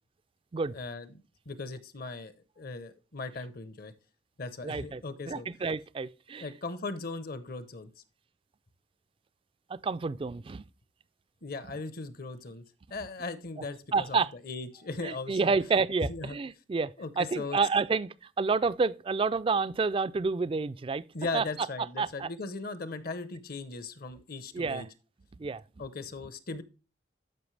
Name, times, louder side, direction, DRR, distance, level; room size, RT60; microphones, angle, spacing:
voice 1, 0.7-3.9 4.4-5.5 6.4-7.9 11.4-12.6 12.9-14.2 14.4-15.6 16.1-16.4 17.0-17.6 21.1-24.9 25.8-26.6, left 3 dB, 55° left, 0.9 m, -38 dB
voice 2, 4.6-6.5 9.7-10.7 13.9-14.3 15.0-21.0 21.3-21.4 22.0-22.3 24.5-24.8 25.4-25.6, right 4 dB, 30° right, 0.3 m, -29 dB
12.0 x 5.6 x 3.3 m
head